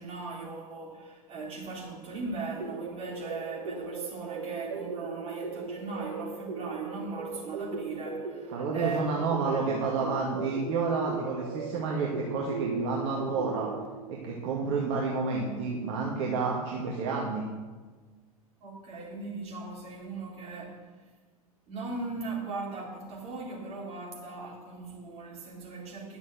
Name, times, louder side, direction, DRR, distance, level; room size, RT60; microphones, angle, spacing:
voice 1, 0.0-9.8 18.6-20.9 21.7-26.2, right 3 dB, 30° right, 3.9 m, -39 dB
sound 1, 2.6-13.9, right 4 dB, 65° right, 1.1 m, -38 dB
voice 2, 8.5-13.7 14.1-17.4, right 4 dB, 50° right, 1.9 m, -30 dB
10.5 x 7.2 x 7.8 m
figure-of-eight pair, 90°, 19 cm